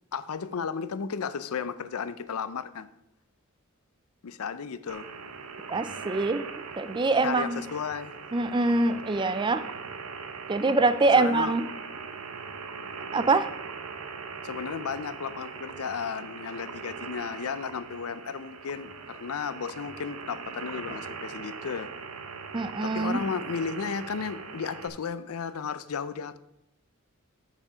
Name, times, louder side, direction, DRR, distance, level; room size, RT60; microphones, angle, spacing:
voice 1, 0.1-2.9 4.2-5.1 7.2-8.1 11.1-11.5 14.4-21.9 22.8-26.4, left 6 dB, 80° left, 13 dB, 0.5 m, -34 dB
sound 1, 4.9-24.9, right 5 dB, 90° right, 0.8 m, -40 dB
voice 2, 5.7-6.4 6.8-7.6 8.3-9.6 10.5-11.6 13.1-13.5 22.5-23.2, right 3 dB, 20° right, 12 dB, 0.4 m, -24 dB
7.1 x 6.9 x 5.0 m, 0.80 s
head